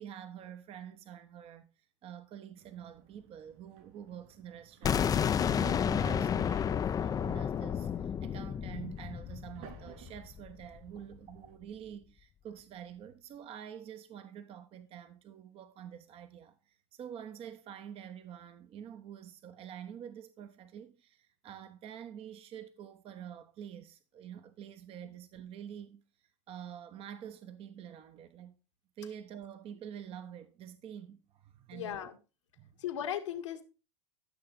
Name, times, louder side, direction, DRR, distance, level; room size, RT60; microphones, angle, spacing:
voice 1, 0.0-28.6 29.0-32.1 32.6-32.7, right 9 dB, 40° right, 1.1 m, -47 dB
sound 1, 2.6-11.6, right 9 dB, 60° right, 4.3 m, -57 dB
sound 2, 4.8-10.6, left 8 dB, 25° left, 0.6 m, -31 dB
voice 2, 31.7-32.2 32.8-33.6, left 10 dB, 80° left, 1.8 m, -37 dB
13.5 x 6.6 x 4.1 m
hypercardioid pair, 95°, 15 cm